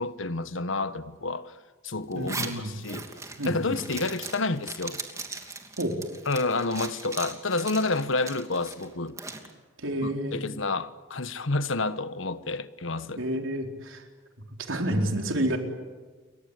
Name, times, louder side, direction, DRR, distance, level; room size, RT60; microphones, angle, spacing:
voice 1, 0.0-1.5 1.8-3.1 3.4-5.0 6.3-9.2 10.0-13.2, left 3 dB, 75° left, 1.3 m, -29 dB
Zipper (clothing), 2.1-9.5, right 3 dB, 15° right, 2.9 m, -39 dB
voice 2, 2.1-2.7 3.4-3.8 5.8-6.0 9.8-10.4 13.2-14.0 14.6-15.6, right 1 dB, 80° right, 4.1 m, -29 dB
29.5 x 23.5 x 8.3 m
head